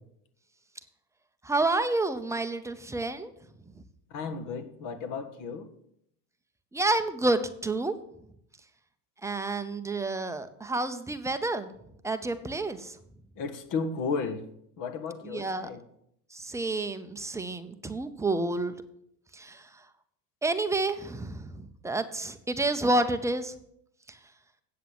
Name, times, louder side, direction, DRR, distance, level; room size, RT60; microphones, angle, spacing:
voice 1, 1.4-3.3 6.7-7.9 9.2-11.7 12.0-13.0 15.3-15.7 16.3-18.7 19.3-19.7 20.4-23.5 24.1-24.2, right 2 dB, 5° right, 9 dB, 0.6 m, -29 dB
voice 2, 4.1-5.7 13.4-14.4 14.8-15.8, left 5 dB, 45° left, 10 dB, 1.6 m, -34 dB
8.5 x 7.6 x 7.7 m, 0.73 s
supercardioid pair, 115°, 45 cm